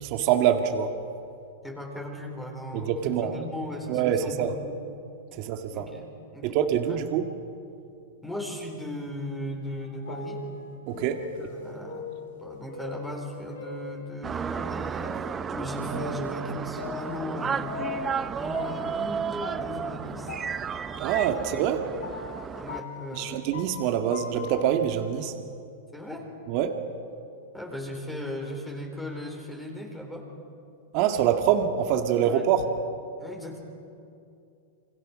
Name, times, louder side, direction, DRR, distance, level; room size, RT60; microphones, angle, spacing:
voice 1, 0.1-0.9 2.7-3.4 3.9-4.5 5.3-5.9 6.4-7.3 10.9-11.2 21.0-21.8 23.1-25.3 26.5-26.8 30.9-32.7, right 9 dB, 45° right, 5 dB, 1.8 m, -25 dB
voice 2, 1.6-4.8 5.7-6.1 6.3-6.6 6.9-7.0 8.2-10.4 11.2-17.8 18.3-20.3 21.5-21.7 22.6-23.5 25.9-26.3 27.5-30.3 32.2-32.4 33.2-33.6, left 1 dB, 5° left, 1 dB, 4.1 m, -37 dB
sound 1, 9.7-14.5 15.0-18.3 18.5-24.6, left 4 dB, 85° left, 5.1 m, -40 dB
sound 2, 14.2-22.8, right 6 dB, 20° right, 0.6 m, -33 dB
28.0 x 24.5 x 6.3 m, 2.6 s
hypercardioid pair, 135°, 0 cm